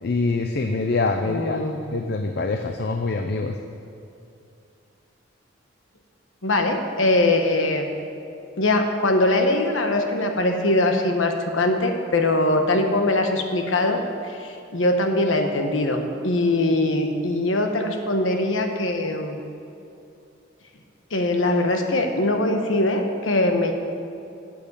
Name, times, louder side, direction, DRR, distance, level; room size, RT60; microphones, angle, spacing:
voice 1, 0.0-1.6 1.9-3.6, left 3 dB, 55° left, 6 dB, 0.5 m, -24 dB
voice 2, 1.2-1.8 6.4-7.9 8.6-19.4 21.1-23.7, left 2 dB, 80° left, 4 dB, 1.2 m, -22 dB
8.7 x 7.7 x 8.4 m, 2.7 s
head